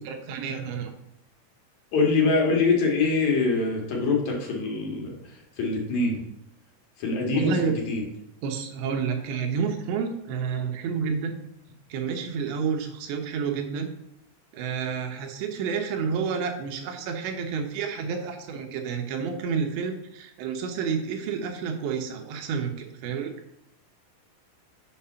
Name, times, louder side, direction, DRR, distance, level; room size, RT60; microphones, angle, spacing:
voice 1, 0.0-0.9 7.3-7.7 8.4-11.3 11.9-13.9 14.5-23.3, right 6 dB, 80° right, 4 dB, 3.3 m, -29 dB
voice 2, 1.9-6.2 7.0-8.0, left 3 dB, 50° left, -1 dB, 2.7 m, -24 dB
7.1 x 6.0 x 5.6 m, 0.80 s
omnidirectional pair, 5.0 m